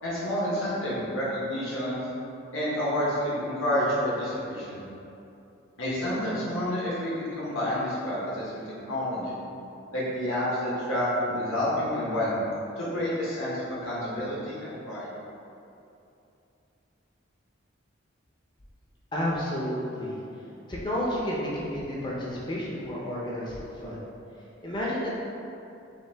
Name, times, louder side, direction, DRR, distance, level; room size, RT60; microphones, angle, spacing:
voice 1, 0.0-2.0 2.5-4.8 5.8-9.4 9.9-12.4 12.8-15.1, left 1 dB, 85° left, -8 dB, 1.1 m, -29 dB
voice 2, 19.1-20.2 20.7-24.0 24.6-25.1, equal, 25° left, -5 dB, 0.6 m, -31 dB
5.5 x 2.7 x 3.4 m, 2.7 s
head